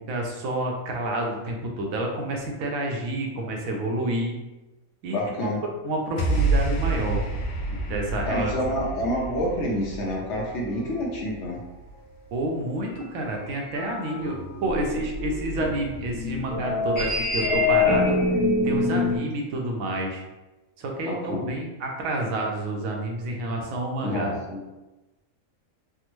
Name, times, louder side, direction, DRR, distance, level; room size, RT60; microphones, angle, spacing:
voice 1, 0.1-4.3 5.0-5.5 5.8-7.2 7.7-8.5 12.3-18.2 18.6-20.2 20.8-24.4, right 1 dB, 75° right, 1 dB, 1.0 m, -29 dB
voice 2, 5.1-5.6 8.3-11.6 12.9-13.0 21.0-21.6 24.0-24.6, equal, 65° left, -2 dB, 0.8 m, -28 dB
sound 1, 6.2-12.6, right 2 dB, 90° left, 1.1 m, -29 dB
sound 2, 13.4-19.2, left 3 dB, 35° left, 1.2 m, -25 dB
3.5 x 2.0 x 2.9 m, 1.1 s
omnidirectional pair, 1.5 m